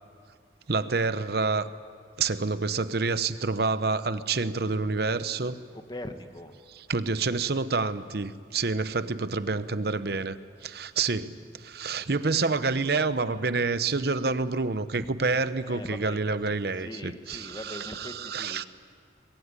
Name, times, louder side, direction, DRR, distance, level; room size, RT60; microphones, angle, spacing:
voice 1, 0.7-1.7 2.2-5.6 6.7-10.4 10.6-18.6, right 4 dB, 55° right, 13 dB, 0.9 m, -28 dB
voice 2, 5.7-6.5 15.0-15.1 15.6-16.2 16.8-18.7, left 1 dB, 25° left, 7 dB, 1.4 m, -41 dB
24.0 x 21.5 x 9.8 m, 2.1 s
head